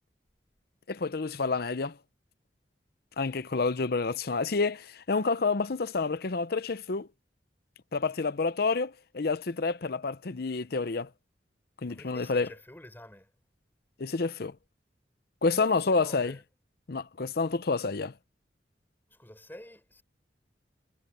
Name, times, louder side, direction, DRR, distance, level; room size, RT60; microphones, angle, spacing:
voice 1, 0.9-2.0 3.2-7.1 7.9-11.1 11.8-12.5 14.0-14.6 15.4-16.4 16.9-18.1, left 4 dB, 60° left, 0.7 m, -29 dB
voice 2, 11.9-13.3 15.5-16.4 19.1-20.0, left 1 dB, 10° left, 4.3 m, -49 dB
head